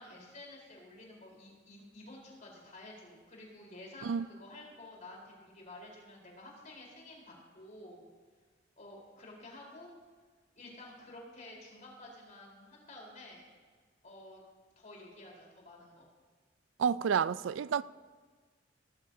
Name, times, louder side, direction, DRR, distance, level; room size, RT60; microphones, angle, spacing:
voice 1, 0.0-8.0 8.8-9.9 10.6-13.4 14.0-14.4 14.8-16.1, left 1 dB, 40° left, 4.0 m, -51 dB
voice 2, 16.8-17.8, right 7 dB, 75° right, 0.3 m, -30 dB
18.5 x 14.0 x 2.7 m
head